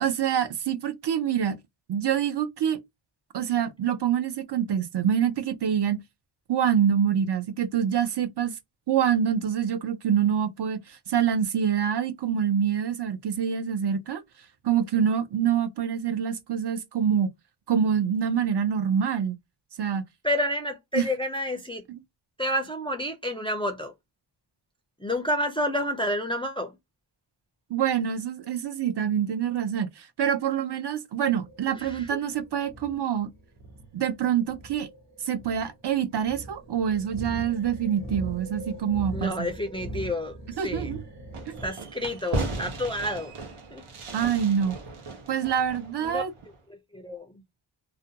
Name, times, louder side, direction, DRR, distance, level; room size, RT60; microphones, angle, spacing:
voice 1, 0.0-1.6 1.9-2.8 3.3-6.0 6.5-8.5 8.9-14.2 14.6-17.3 17.7-19.4 19.8-20.0 20.9-21.1 21.9-22.0 27.7-33.3 33.9-34.9 35.2-39.5 40.6-41.0 41.5-41.6 44.1-44.8 45.3-46.3, right 8 dB, 55° right, 0.5 m, -26 dB
voice 2, 20.2-21.8 22.4-23.9 25.0-26.8 31.8-32.2 39.1-40.9 41.6-43.3 43.7-43.8 46.0-46.2 46.7-47.3, left 1 dB, 10° left, 0.3 m, -29 dB
sound 1, 31.3-41.7, right 1 dB, 35° right, 0.8 m, -40 dB
Fireworks, 41.3-46.6, right 2 dB, 85° right, 0.9 m, -36 dB
2.4 x 2.2 x 2.7 m
wide cardioid pair, 105°, 49 cm